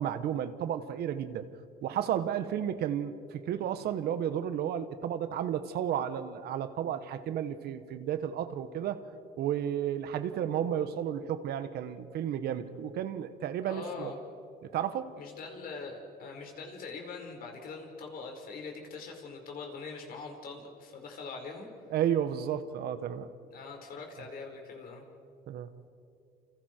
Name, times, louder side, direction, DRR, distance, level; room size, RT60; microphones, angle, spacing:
voice 1, 0.0-1.5 1.8-9.0 9.4-14.1 14.7-15.2 21.9-23.3 25.5-25.7, right 9 dB, 70° right, 11 dB, 1.4 m, -32 dB
voice 2, 13.7-14.2 15.2-21.7 23.5-25.0, left 4 dB, 60° left, 2 dB, 4.8 m, -43 dB
29.0 x 28.0 x 4.6 m, 2.6 s
cardioid pair, 110°, 17 cm